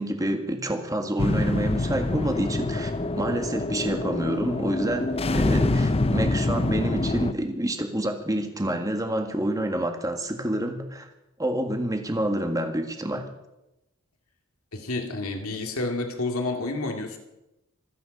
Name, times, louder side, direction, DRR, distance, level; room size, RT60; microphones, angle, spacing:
voice 1, 0.0-11.1 11.4-13.3, right 1 dB, 15° right, 5 dB, 1.8 m, -28 dB
sound 1, 1.2-7.3, left 2 dB, 30° left, 0.6 m, -26 dB
voice 2, 14.7-17.2, left 2 dB, 80° left, 4 dB, 2.3 m, -29 dB
26.0 x 9.5 x 5.4 m, 0.93 s
head